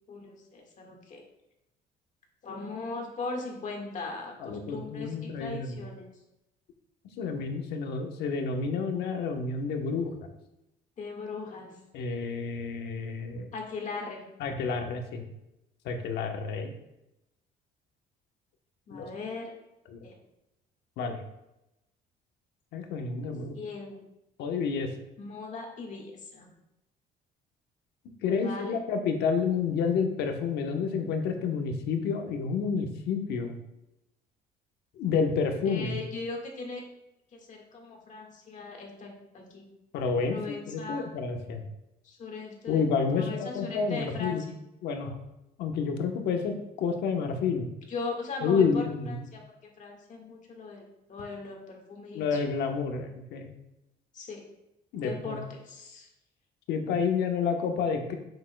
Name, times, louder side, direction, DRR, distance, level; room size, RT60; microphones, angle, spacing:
voice 1, 0.1-1.2 2.4-6.1 11.0-11.7 13.5-14.2 18.9-19.5 20.0-20.1 23.5-24.0 25.2-26.5 28.3-28.8 35.6-36.8 37.3-39.7 40.3-41.1 42.0-42.8 43.1-44.4 47.9-49.4 49.8-50.8 51.1-52.4 54.1-54.4 55.0-56.1, left 4 dB, 45° left, 1 dB, 1.6 m, -39 dB
voice 2, 4.4-5.8 7.2-10.1 11.9-13.5 14.4-15.2 15.8-16.7 18.9-19.1 19.9-20.0 21.0-21.2 22.7-23.5 24.4-24.9 28.2-33.5 35.0-36.0 39.9-41.6 42.7-44.5 44.8-45.2 45.6-47.6 48.4-49.2 52.1-53.5 54.9-55.4 56.7-58.1, left 5 dB, 80° left, 4 dB, 1.0 m, -29 dB
6.9 x 6.4 x 2.2 m, 0.89 s
cardioid pair, 110°, 17 cm